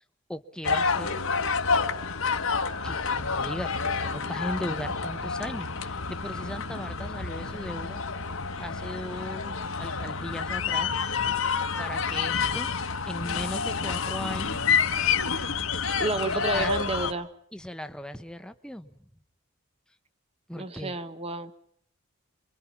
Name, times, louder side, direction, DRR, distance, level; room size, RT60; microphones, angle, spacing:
voice 1, 0.3-1.2 2.8-8.0 8.6-11.0 11.8-12.7 13.0-14.6 15.7-16.7 17.5-18.9 20.5-21.0, left 1 dB, 5° left, 9 dB, 1.0 m, -38 dB
sound 1, 0.6-17.1, left 5 dB, 70° left, 1.6 m, -28 dB
voice 2, 16.0-17.3 20.5-21.5, right 2 dB, 25° right, 11 dB, 1.2 m, -30 dB
27.5 x 24.0 x 6.0 m, 0.64 s
head